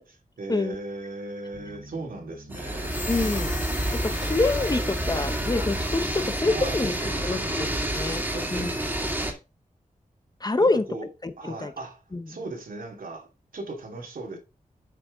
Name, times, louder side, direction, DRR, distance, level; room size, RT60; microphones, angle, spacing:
voice 1, 0.1-3.0 6.5-7.6 8.3-9.2 10.6-11.1 11.4-14.4, right 2 dB, 80° right, 2.6 m, -38 dB
sound 1, 1.5-8.0, right 1 dB, 60° right, 2.8 m, -45 dB
sound 2, 2.5-9.3, right 1 dB, 15° right, 2.1 m, -29 dB
sound 3, 2.7-6.4, left 3 dB, 65° left, 2.5 m, -40 dB
voice 2, 3.1-3.5 4.2-6.9 7.2-7.7 7.9-8.2 8.5-8.7 10.4-10.8 11.2-11.7 12.1-12.2, left 3 dB, 30° left, 0.7 m, -26 dB
7.6 x 5.8 x 3.7 m
wide cardioid pair, 110°, 14 cm